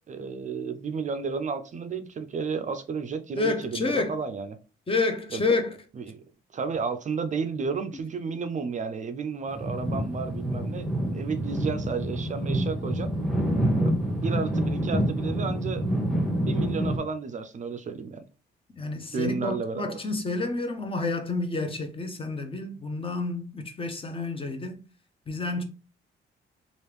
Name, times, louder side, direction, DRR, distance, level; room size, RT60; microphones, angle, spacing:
voice 1, 0.1-4.5 5.3-5.4 6.1-6.2 6.5-13.1 13.8-14.0 14.2-15.8 16.5-18.2 19.1-20.0, right 5 dB, 40° right, 0.4 m, -32 dB
voice 2, 3.3-4.2 4.9-5.8 18.7-24.8 25.3-25.6, left 3 dB, 25° left, 0.7 m, -29 dB
sound 1, 9.5-17.0, right 1 dB, ahead, 0.9 m, -27 dB
3.2 x 2.5 x 3.2 m
cardioid pair, 90°, 20 cm